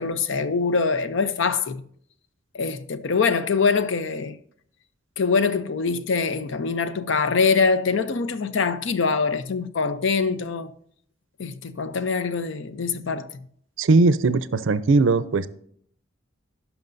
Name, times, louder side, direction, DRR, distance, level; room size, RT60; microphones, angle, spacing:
voice 1, 0.0-1.8 2.5-4.4 5.2-10.7 11.4-13.5, left 5 dB, 70° left, 0.6 m, -24 dB
voice 2, 13.8-15.5, right 3 dB, 75° right, 0.5 m, -19 dB
16.5 x 5.8 x 2.6 m
head